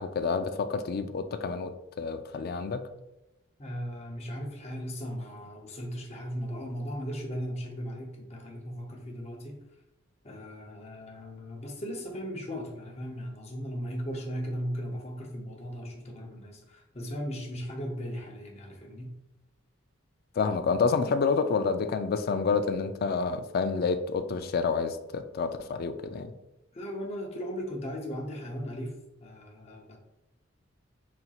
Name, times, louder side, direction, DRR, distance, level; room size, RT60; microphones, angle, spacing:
voice 1, 0.0-1.7 2.0-2.8 20.4-26.3, left 5 dB, 50° left, 9 dB, 0.3 m, -28 dB
voice 2, 3.6-9.6 10.2-19.1 26.7-28.9 29.2-30.0, equal, 30° left, 1 dB, 0.7 m, -37 dB
4.4 x 4.0 x 2.4 m, 0.93 s
head